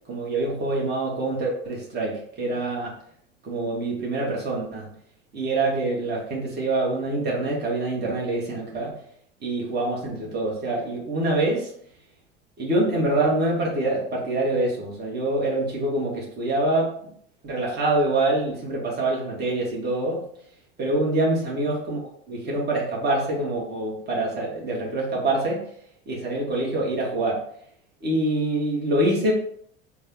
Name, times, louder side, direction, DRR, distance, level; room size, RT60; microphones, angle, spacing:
voice 1, 0.1-2.9 3.4-4.9 5.3-9.0 9.4-11.7 12.6-16.9 17.4-20.2 20.8-22.0 22.3-25.6 26.1-27.4 28.0-29.3, right 2 dB, 35° right, -4 dB, 1.5 m, -25 dB
4.0 x 2.4 x 3.8 m, 0.63 s
hypercardioid pair, 85°, 30 cm